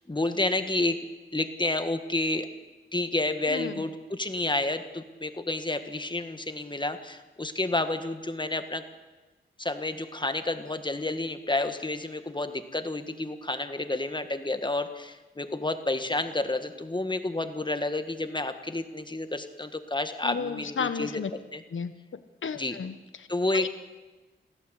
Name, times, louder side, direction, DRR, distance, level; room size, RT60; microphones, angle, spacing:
voice 1, 0.1-1.0 1.3-2.5 2.9-8.8 9.6-21.2 21.5-21.6 22.6-22.8 23.3-23.7, left 2 dB, 20° left, 8 dB, 1.7 m, -30 dB
voice 2, 3.5-3.8 20.2-21.3 21.7-23.3 23.5-23.7, left 6 dB, 70° left, 11 dB, 1.1 m, -33 dB
26.5 x 16.0 x 8.2 m, 1.2 s
wide cardioid pair, 105°, 21 cm